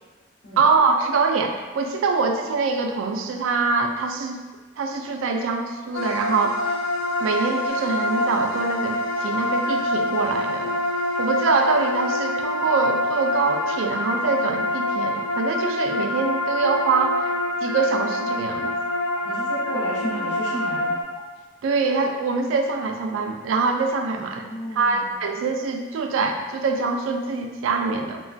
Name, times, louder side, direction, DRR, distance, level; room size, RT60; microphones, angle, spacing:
voice 1, 0.6-4.5 4.8-6.7 7.2-10.7 11.2-17.3 17.6-18.7 21.6-24.4 24.7-28.2, right 4 dB, 85° right, 4 dB, 0.3 m, -24 dB
sound 1, 5.9-21.0, left 1 dB, 90° left, 0.3 m, -26 dB
sound 2, 7.7-7.8 8.2-8.3 8.7-8.8 9.2-9.3 9.7-9.8 10.2-10.3 10.7-10.8 11.2-11.3 11.7-11.8 12.2-12.3 12.7-12.8 13.2-13.3 13.7-13.8 14.2-14.3 14.7-14.8 15.2-15.3 15.7-15.8 16.2-16.3 16.7-16.8 17.2-17.3 17.7-17.8 18.2-18.3 18.7-18.8 19.2-19.3 19.7-19.8 20.2-20.3 20.7-20.8 21.2-21.3 21.7-21.8 22.2-22.3 22.7-22.8 23.2-23.3, right 2 dB, ahead, 0.4 m, -45 dB
voice 2, 19.2-20.9 24.1-25.1, equal, 65° left, -8 dB, 0.7 m, -33 dB
3.1 x 2.2 x 2.5 m, 1.3 s
head